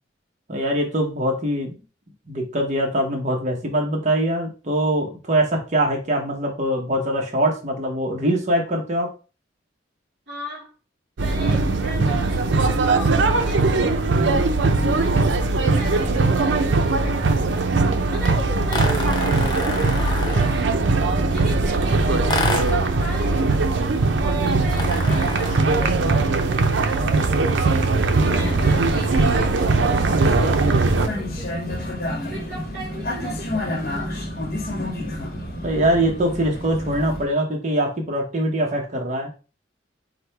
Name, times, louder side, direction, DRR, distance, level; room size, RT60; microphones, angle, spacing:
voice 1, 0.5-1.8 2.3-9.1 14.1-14.4 14.7-15.0 21.2-21.4 24.5-24.6 35.0-35.2 35.6-39.3, right 1 dB, 40° right, 0.8 m, -23 dB
voice 2, 10.3-10.7 11.2-13.7 14.1-14.4 14.9-17.7 18.1-20.7 21.3-24.0 24.4-34.2, right 1 dB, 60° right, 2.5 m, -37 dB
sound 1, 11.2-31.1, right 3 dB, 75° right, 0.6 m, -20 dB
sound 2, 18.7-20.7 22.3-22.9 24.7-25.7, left 2 dB, 25° left, 0.6 m, -28 dB
Vehicle, 28.1-37.3, left 1 dB, 55° left, 1.0 m, -30 dB
4.9 x 2.1 x 4.5 m
head